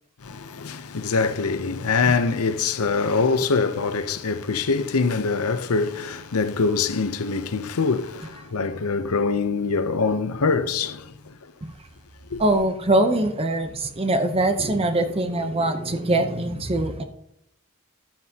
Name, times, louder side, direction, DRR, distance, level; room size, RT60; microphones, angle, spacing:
voice 1, 0.2-11.4 12.3-12.4, left 4 dB, 85° left, 0.7 m, -24 dB
voice 2, 12.4-17.0, right 1 dB, 25° right, 0.7 m, -23 dB
12.0 x 9.7 x 2.8 m
head